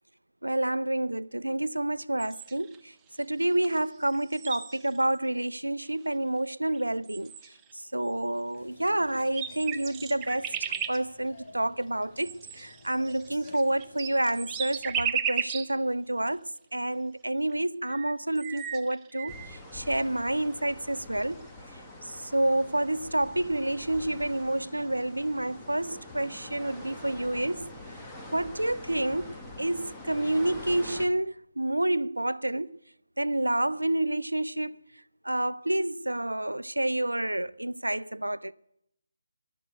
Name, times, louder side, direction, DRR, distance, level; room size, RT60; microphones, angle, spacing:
voice 1, 0.4-2.9 3.2-7.3 7.9-21.4 22.0-27.7 28.3-32.8 33.2-34.7 35.2-38.5, right 1 dB, 80° right, 0.5 m, -29 dB
sound 1, 2.2-2.8 3.6-5.1 5.8-5.9 6.7-6.8 7.1-7.7 8.8-8.9 9.2-11.0 12.2-15.7 16.3-16.4 17.5-17.6 17.8-19.6, right 8 dB, 15° right, 0.5 m, -35 dB
sound 2, 8.6-14.8, left 2 dB, 40° left, 3.3 m, -52 dB
sound 3, 19.3-31.1, left 1 dB, 5° left, 1.3 m, -45 dB
14.0 x 11.5 x 6.7 m
figure-of-eight pair, 150°, 0 cm